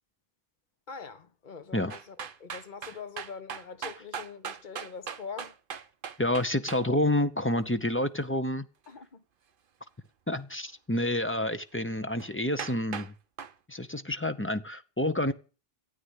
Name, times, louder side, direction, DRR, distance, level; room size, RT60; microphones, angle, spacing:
voice 1, 0.9-5.6 8.9-9.2, left 6 dB, 50° left, 1.3 m, -43 dB
sound 1, 1.9-6.8 12.2-12.3 12.6-13.1 13.4-13.5, right 7 dB, 60° right, 1.0 m, -38 dB
voice 2, 6.2-8.7 10.3-13.1 13.7-15.3, left 1 dB, 15° left, 0.7 m, -29 dB
13.0 x 8.8 x 8.2 m
omnidirectional pair, 1.0 m